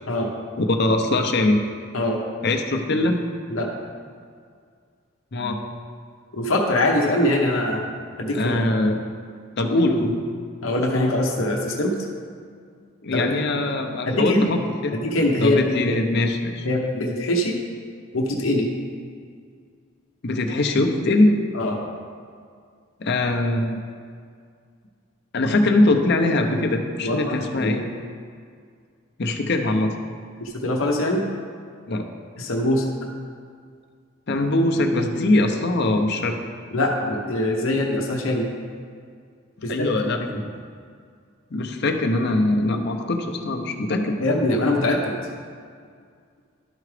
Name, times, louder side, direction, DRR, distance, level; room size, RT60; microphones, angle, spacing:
voice 1, 0.6-1.6 2.4-3.2 5.3-5.6 8.3-9.0 9.6-10.2 13.0-14.9 15.4-16.6 20.2-21.4 23.0-23.8 25.3-27.8 29.2-29.9 31.9-32.1 34.3-36.4 39.7-40.2 41.5-44.2, left 2 dB, 55° left, 3 dB, 0.7 m, -22 dB
voice 2, 6.3-7.8 8.2-8.5 10.6-12.0 13.1-13.3 14.1-14.5 14.9-15.6 15.9-16.0 16.6-17.6 18.1-18.7 21.5-21.8 27.0-27.7 30.4-31.3 32.4-32.8 36.7-38.5 39.6-39.9 40.3-40.4 44.2-45.1, left 1 dB, 90° left, 0 dB, 0.9 m, -22 dB
12.0 x 4.8 x 3.3 m, 2.1 s
head